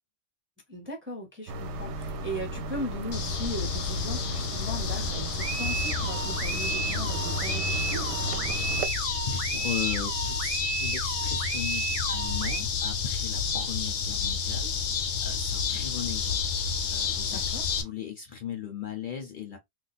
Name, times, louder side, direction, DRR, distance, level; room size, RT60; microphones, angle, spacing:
voice 1, 0.7-8.2 17.3-17.6, equal, 15° right, 0.6 m, -38 dB
sound 1, 1.5-8.9, right 1 dB, 70° right, 0.8 m, -35 dB
sound 2, 3.1-17.8, left 6 dB, 70° left, 0.9 m, -30 dB
sound 3, 5.4-12.6, right 5 dB, 55° right, 0.3 m, -33 dB
voice 2, 9.3-14.7 15.2-19.6, left 9 dB, 55° left, 0.7 m, -38 dB
2.4 x 2.3 x 4.0 m
omnidirectional pair, 1.2 m